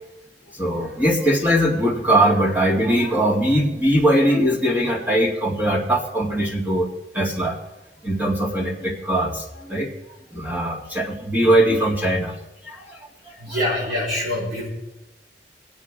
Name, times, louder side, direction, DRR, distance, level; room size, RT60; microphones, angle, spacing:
voice 1, 0.5-6.9 7.1-7.6 8.0-9.9 10.3-12.4 12.6-13.0 13.3-13.6, right 1 dB, 10° right, -2 dB, 2.3 m, -21 dB
voice 2, 13.4-14.7, left 1 dB, 65° right, -8 dB, 4.8 m, -25 dB
22.0 x 8.3 x 3.7 m, 1.0 s
head